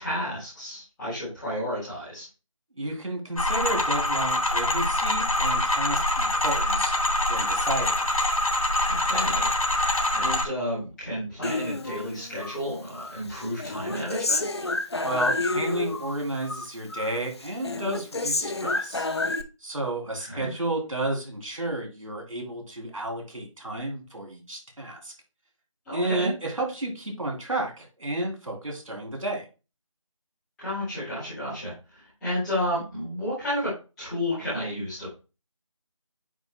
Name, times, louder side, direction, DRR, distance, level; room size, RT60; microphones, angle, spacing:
voice 1, 0.0-2.3 9.0-9.5 10.1-14.4 20.2-20.5 25.9-26.3 30.6-35.1, left 1 dB, 5° left, -15 dB, 1.9 m, -31 dB
voice 2, 2.8-6.9 7.3-8.0 15.0-19.1 19.6-25.1 25.9-29.4, right 2 dB, 70° right, 1 dB, 3.0 m, -32 dB
sound 1, 3.4-10.5, left 1 dB, 80° left, 2.5 m, -24 dB
Human voice, 11.4-12.6 12.9-16.1 16.4-17.2 17.4-19.4, left 2 dB, 50° left, 0.7 m, -29 dB
9.2 x 5.3 x 2.2 m, 0.31 s
figure-of-eight pair, 175°, 17 cm